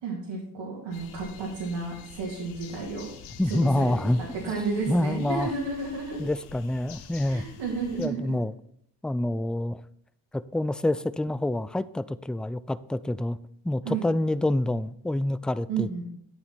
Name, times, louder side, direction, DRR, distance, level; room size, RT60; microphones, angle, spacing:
voice 1, 0.0-3.1 3.4-6.3 7.2-8.4 13.8-14.1 15.7-16.0, right 4 dB, 75° right, -4 dB, 2.6 m, -32 dB
sound 1, 0.9-8.1, left 6 dB, 85° left, 1.0 m, -47 dB
voice 2, 3.4-4.2 4.9-5.5 6.2-7.4 8.0-8.5 9.0-9.8 10.3-13.4 13.6-16.0, left 1 dB, ahead, 17 dB, 0.4 m, -27 dB
9.5 x 8.2 x 4.3 m, 0.68 s
hypercardioid pair, 40°, 47 cm